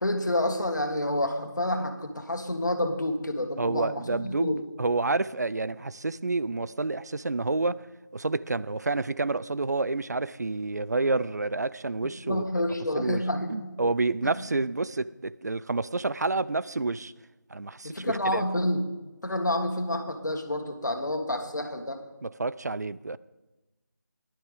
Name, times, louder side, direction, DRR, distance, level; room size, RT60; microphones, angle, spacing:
voice 1, 0.0-4.6 12.0-13.7 17.8-18.8 19.2-22.0, left 1 dB, 65° left, 1.8 m, -29 dB
voice 2, 3.6-7.9 8.1-12.4 12.9-17.1 17.5-18.4 22.2-23.2, right 3 dB, 60° right, 0.5 m, -29 dB
17.0 x 11.5 x 3.6 m
figure-of-eight pair, 165°, 10 cm